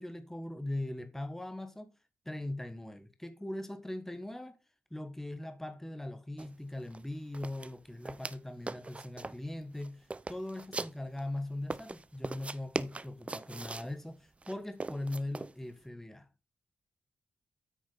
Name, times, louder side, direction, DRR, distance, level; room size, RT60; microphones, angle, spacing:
voice 1, 0.0-1.9 2.2-4.6 4.9-16.3, left 1 dB, 10° left, 1.3 m, -40 dB
sound 1, 6.4-6.5 6.8-7.0 7.3-8.4 8.7-9.4 9.8-11.2 11.7-13.9 14.4-15.5, right 3 dB, 30° right, 0.5 m, -40 dB
8.9 x 6.1 x 4.0 m
cardioid pair, 55°, 4 cm